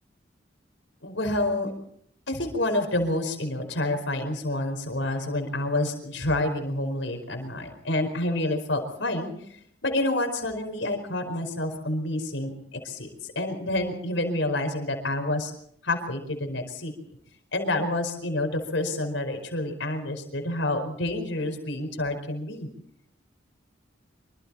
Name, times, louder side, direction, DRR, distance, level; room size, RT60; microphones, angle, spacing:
voice 1, 1.0-1.7 2.3-15.5 15.8-16.9 17.5-22.7, left 1 dB, 80° left, 6 dB, 4.8 m, -28 dB
26.0 x 25.0 x 4.3 m, 0.69 s
head